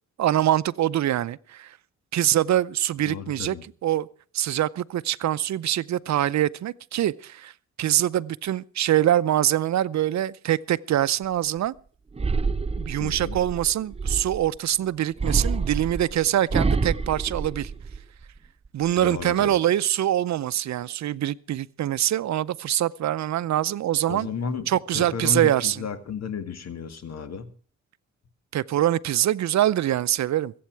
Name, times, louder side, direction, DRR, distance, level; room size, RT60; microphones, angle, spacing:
voice 1, 0.2-1.8 2.1-3.6 3.8-4.1 4.3-7.5 7.8-11.7 12.8-17.7 18.7-24.3 24.7-25.8 28.5-30.5, right 12 dB, 65° right, 0.6 m, -24 dB
voice 2, 3.0-3.6 13.0-13.4 18.9-19.6 24.1-27.5, left 5 dB, 60° left, 2.0 m, -33 dB
sound 1, 12.2-14.6 15.2-18.2 18.7-19.2, right 4 dB, 20° right, 0.7 m, -27 dB
23.0 x 8.6 x 4.6 m
cardioid pair, 75°, 30 cm